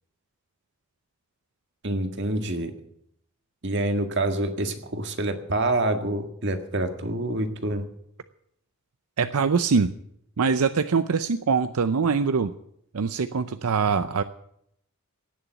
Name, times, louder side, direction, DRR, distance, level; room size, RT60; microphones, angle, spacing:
voice 1, 1.8-2.7 3.6-7.8, right 1 dB, 55° right, 6 dB, 1.8 m, -27 dB
voice 2, 9.2-9.9 10.4-12.5 12.9-14.2, right 5 dB, 80° right, 11 dB, 0.6 m, -23 dB
17.5 x 7.1 x 9.0 m, 0.72 s
head